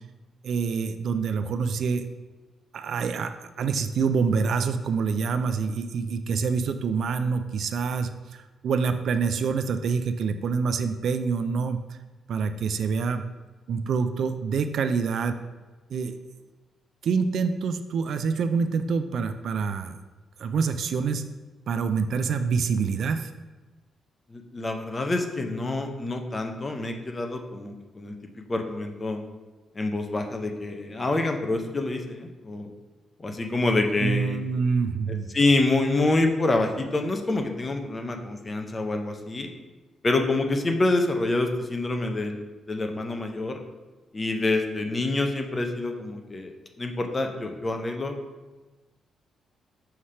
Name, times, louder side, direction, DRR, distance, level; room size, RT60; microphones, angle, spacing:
voice 1, 0.4-2.0 2.7-8.1 8.6-11.8 12.3-13.2 13.7-15.4 15.9-16.2 17.0-20.0 20.4-21.3 21.7-23.3 34.0-35.3, right 5 dB, 60° right, 9 dB, 0.4 m, -26 dB
voice 2, 24.3-28.1 28.5-29.2 29.7-32.7 33.2-34.4 35.1-39.5 40.0-43.6 44.1-48.2, left 2 dB, 20° left, 5 dB, 0.6 m, -27 dB
5.6 x 3.3 x 5.5 m, 1.2 s
cardioid pair, 155°, 0 cm